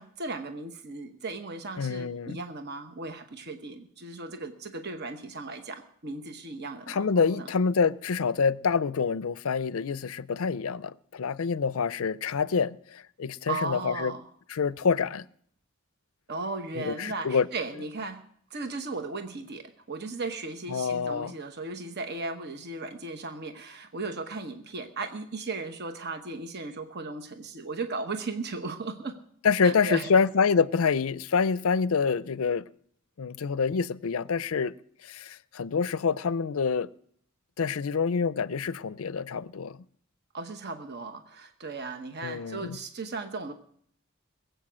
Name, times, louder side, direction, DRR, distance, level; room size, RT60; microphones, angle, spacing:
voice 1, 0.0-7.5 13.5-14.3 16.3-18.2 18.5-29.2 29.6-30.1 40.3-43.5, right 3 dB, 50° right, 1.0 m, -36 dB
voice 2, 1.8-2.4 6.9-14.1 14.5-15.3 16.8-17.5 20.7-21.3 29.4-32.6 33.2-34.7 35.0-36.9 37.6-39.8 42.2-42.8, left 5 dB, 70° left, 0.5 m, -27 dB
21.0 x 8.2 x 6.2 m
head